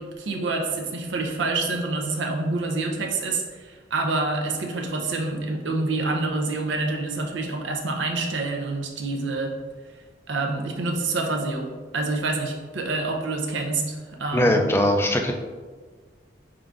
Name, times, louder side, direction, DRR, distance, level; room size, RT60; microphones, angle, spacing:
voice 1, 0.0-9.5 10.3-14.6, right 3 dB, 85° right, 2 dB, 0.6 m, -27 dB
voice 2, 14.3-15.3, left 1 dB, 15° left, 2 dB, 0.3 m, -20 dB
4.4 x 3.7 x 2.5 m, 1.4 s
head